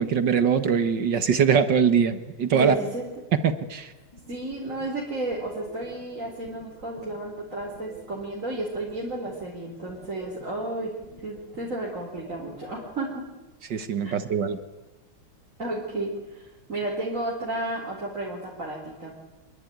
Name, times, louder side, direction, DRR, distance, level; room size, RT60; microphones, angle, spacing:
voice 1, 0.0-2.8 3.4-3.9 13.7-14.6, right 7 dB, 60° right, 11 dB, 2.0 m, -22 dB
voice 2, 2.5-3.0 4.3-10.9 11.2-13.2 14.0-14.1 15.6-19.1, right 2 dB, 40° right, -2 dB, 4.3 m, -32 dB
sound 1, 4.1-13.1, left 2 dB, 60° left, 4.9 m, -48 dB
26.0 x 23.0 x 9.4 m, 1.1 s
omnidirectional pair, 2.2 m